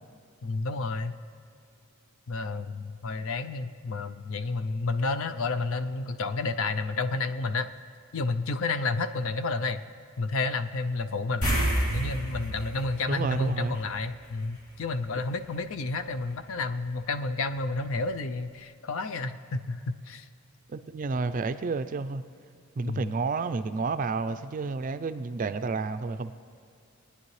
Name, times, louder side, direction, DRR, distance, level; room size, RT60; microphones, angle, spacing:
voice 1, 0.4-1.2 2.3-7.7 8.1-9.8 10.2-11.5 11.9-20.3 22.9-23.1, left 3 dB, 60° left, 10 dB, 0.5 m, -30 dB
sound 1, 11.4-14.2 14.5-14.7 17.6-17.7 18.0-18.1, right 1 dB, 85° left, 2.8 m, -29 dB
voice 2, 13.1-13.8 20.7-22.2 22.8-26.3, right 4 dB, 35° right, 11 dB, 0.4 m, -30 dB
20.5 x 9.6 x 3.2 m, 2.5 s
head